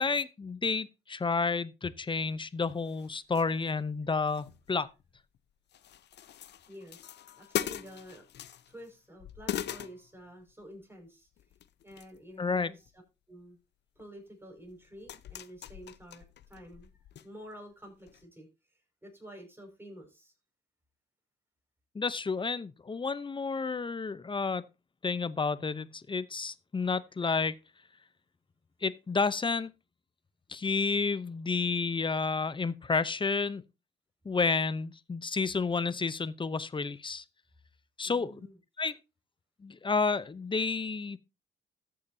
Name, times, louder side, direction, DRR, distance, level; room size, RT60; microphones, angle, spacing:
voice 1, 0.0-4.9 12.4-12.7 21.9-24.6 25.0-27.5 28.8-29.7 30.5-33.6 34.2-37.2 38.0-38.5 38.8-39.0 39.6-41.2, left 4 dB, 25° left, 0.7 m, -30 dB
sound 1, 2.3-2.4 2.8-3.8 4.1-5.4 5.7-8.9 9.2-10.6 11.4-12.2 12.5-13.0 14.0-14.1 14.7-17.2 17.5-17.6 18.1-18.2, left 10 dB, 60° left, 0.7 m, -41 dB
voice 2, 6.7-8.2 8.7-11.3 11.8-12.8 13.3-13.6 14.0-16.9 17.2-18.5 19.0-20.3 38.0-38.6, equal, 10° right, 5.6 m, -50 dB
14.0 x 8.6 x 2.8 m
cardioid pair, 90°, 20 cm